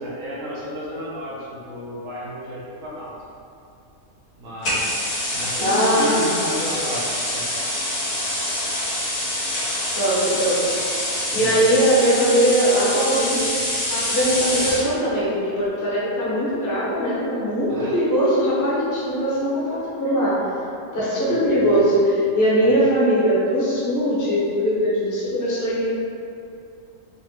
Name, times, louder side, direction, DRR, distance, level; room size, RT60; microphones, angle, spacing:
voice 1, 0.0-3.1 4.4-7.5 11.3-11.7 17.7-17.9 21.2-21.9 22.6-22.8, equal, 75° right, -6 dB, 1.1 m, -32 dB
sound 1, 4.6-14.9, left 1 dB, 60° left, 1.2 m, -25 dB
voice 2, 5.6-6.3 9.9-11.0 11.3-20.4 20.8-25.8, equal, 20° left, -8 dB, 0.5 m, -21 dB
3.9 x 2.1 x 3.0 m, 2.6 s
omnidirectional pair, 1.4 m